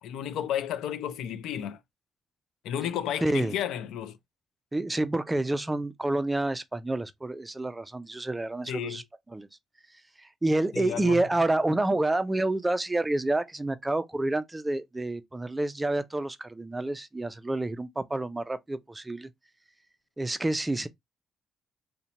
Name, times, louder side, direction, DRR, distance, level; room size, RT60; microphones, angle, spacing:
voice 1, 0.0-1.8 2.6-4.2 8.7-9.0 10.7-11.2, left 10 dB, 85° left, 0.3 m, -32 dB
voice 2, 3.2-3.5 4.7-9.0 9.3-9.5 10.2-19.3 20.2-20.9, right 2 dB, 15° right, 0.3 m, -28 dB
2.7 x 2.1 x 2.7 m
cardioid pair, 90°, 0 cm